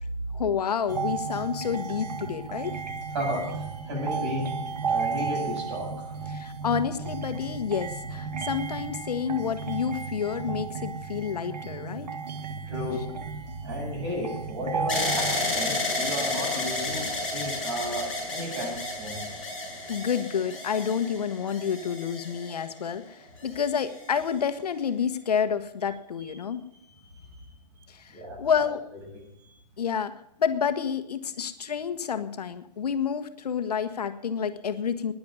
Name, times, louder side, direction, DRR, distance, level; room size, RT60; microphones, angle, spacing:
voice 1, 0.3-2.7 6.3-12.1 12.9-13.0 19.9-26.6 27.9-28.8 29.8-30.1 30.4-35.1, left 7 dB, 70° left, 9 dB, 1.3 m, -29 dB
sound 1, 0.9-15.4, right 5 dB, 75° right, 1.6 m, -34 dB
voice 2, 3.1-4.5 4.8-6.1 12.6-13.1 13.6-19.3 26.9-27.0 27.3-27.4 28.1-28.4, equal, 40° right, 0 dB, 8.0 m, -33 dB
sound 2, 14.9-22.9 23.6-24.3, left 2 dB, ahead, 5.0 m, -31 dB
10.5 x 10.5 x 9.5 m, 0.80 s
hypercardioid pair, 165°, 21 cm